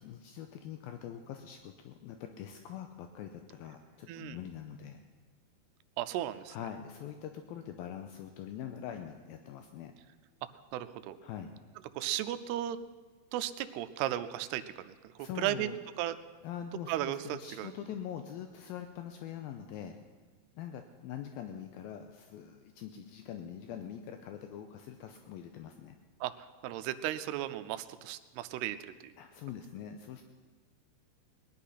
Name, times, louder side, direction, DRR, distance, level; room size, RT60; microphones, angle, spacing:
voice 1, 0.0-5.0 6.5-9.9 11.2-11.5 15.2-15.8 16.4-20.0 20.6-26.0 29.2-30.2, left 9 dB, 80° left, 6 dB, 2.3 m, -43 dB
voice 2, 4.1-4.4 6.0-6.6 10.7-11.2 12.0-12.8 13.3-15.7 16.0-16.2 16.9-17.7 26.2-26.3 26.6-29.1, right 13 dB, 85° right, 11 dB, 2.7 m, -35 dB
19.5 x 11.0 x 5.7 m, 1.4 s
omnidirectional pair, 4.7 m